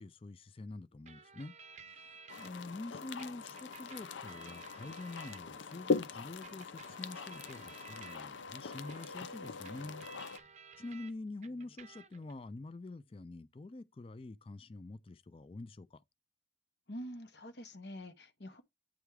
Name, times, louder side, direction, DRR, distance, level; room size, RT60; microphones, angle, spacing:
voice 1, 0.0-1.6 1.9-10.1 10.8-16.0, left 2 dB, 30° left, 0.4 m, -46 dB
sound 1, 1.1-2.5 3.2-5.8 6.4-11.1 11.4-12.3, right 6 dB, 40° right, 0.6 m, -55 dB
sound 2, 2.3-10.4, left 4 dB, 85° left, 0.6 m, -41 dB
voice 2, 16.9-18.6, equal, 65° left, 1.1 m, -46 dB
9.0 x 3.5 x 4.8 m
head